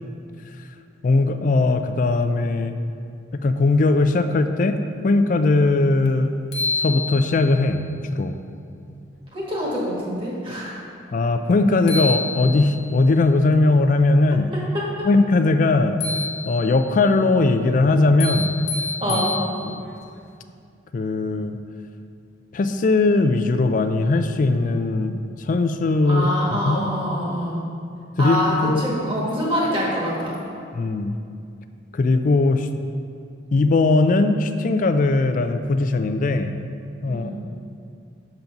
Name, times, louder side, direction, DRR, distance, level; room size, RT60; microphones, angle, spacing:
voice 1, 1.0-2.7 3.3-6.3 6.8-7.8 8.1-8.4 11.1-14.5 15.0-16.0 16.5-18.5 19.1-19.2 19.6-19.8 20.9-21.6 22.5-26.8 28.2-28.9 30.7-31.1 31.9-32.7 33.5-36.5 37.0-37.3, left 3 dB, 45° left, 8 dB, 0.3 m, -19 dB
sound 1, 6.1-6.2 6.5-7.6 11.5-11.6 11.9-12.9 16.0-16.9 18.2-19.9, left 3 dB, 60° left, 0.9 m, -28 dB
voice 2, 9.3-10.8 14.5-15.1 19.0-19.3 26.0-27.6 28.2-30.4 37.1-37.3, equal, 25° right, -5 dB, 1.6 m, -25 dB
6.9 x 3.9 x 5.8 m, 2.4 s
head